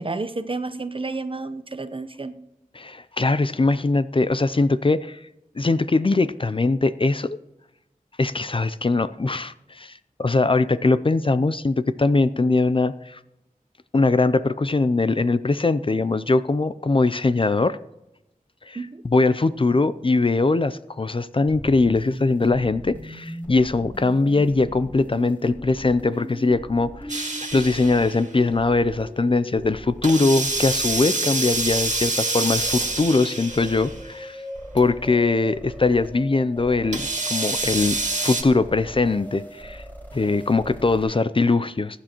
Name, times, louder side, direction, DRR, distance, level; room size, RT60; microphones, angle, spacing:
voice 1, 0.0-2.3 18.7-19.0, right 3 dB, 40° right, 11 dB, 0.8 m, -30 dB
voice 2, 2.7-5.2 5.6-7.4 8.2-13.2 13.9-17.8 18.7-34.4 34.7-39.8 40.1-42.0, left 3 dB, 40° left, 14 dB, 0.5 m, -21 dB
sound 1, 21.5-41.0, equal, 15° left, 4.5 m, -39 dB
sound 2, 27.1-28.2 30.0-34.1 34.8-34.9 36.9-38.4, right 2 dB, 60° right, 2.1 m, -26 dB
21.5 x 10.0 x 3.0 m, 0.92 s
wide cardioid pair, 70°, 14 cm